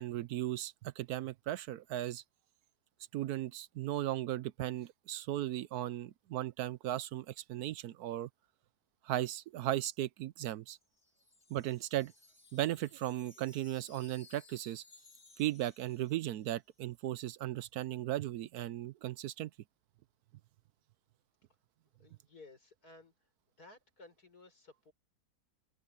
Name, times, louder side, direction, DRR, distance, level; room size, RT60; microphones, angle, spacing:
voice 1, 0.0-2.2 3.1-8.3 9.0-10.8 11.5-12.1 12.5-14.8 15.4-19.5, right 14 dB, 75° right, 1.1 m, -36 dB
Wind chime, 10.8-16.7, left 3 dB, 40° left, 3.4 m, -61 dB
voice 2, 22.0-23.3 23.6-24.9, left 3 dB, 70° left, 6.2 m, -57 dB
omnidirectional pair, 1.7 m